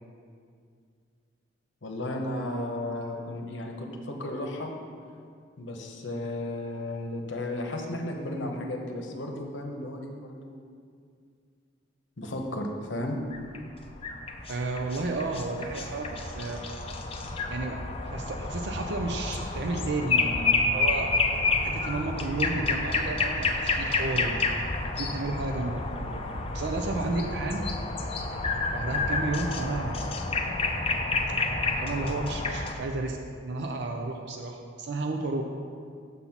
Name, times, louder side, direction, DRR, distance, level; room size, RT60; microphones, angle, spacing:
voice 1, 1.8-4.7 5.6-10.6 12.2-13.2, left 1 dB, 70° left, 2 dB, 0.8 m, -34 dB
sound 1, 13.3-32.7, left 3 dB, 30° left, 0.5 m, -29 dB
voice 2, 14.5-16.6 17.5-21.1 21.6-24.4 24.8-26.2 26.5-27.7 28.7-30.2 31.8-33.2 33.4-35.5, right 2 dB, 60° right, 3 dB, 0.4 m, -32 dB
7.0 x 4.1 x 5.8 m, 2.2 s
head